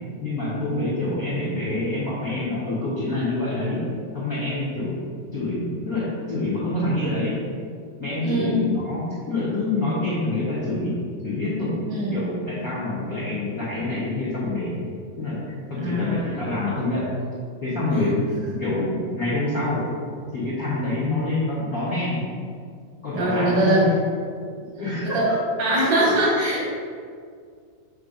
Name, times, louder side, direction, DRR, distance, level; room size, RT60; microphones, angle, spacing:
voice 1, 0.2-3.9 4.1-4.9 5.3-7.4 8.0-14.9 15.2-17.1 17.6-19.9 20.3-22.2 23.0-24.0 24.8-25.4, left 2 dB, 70° left, -9 dB, 0.8 m, -26 dB
voice 2, 8.2-8.7 11.9-12.2 15.8-16.5 23.1-23.9 24.6-24.7 25.0-25.3 25.6-26.7, right 1 dB, 85° right, -5 dB, 3.2 m, -22 dB
7.7 x 2.7 x 4.9 m, 2.1 s
omnidirectional pair, 3.5 m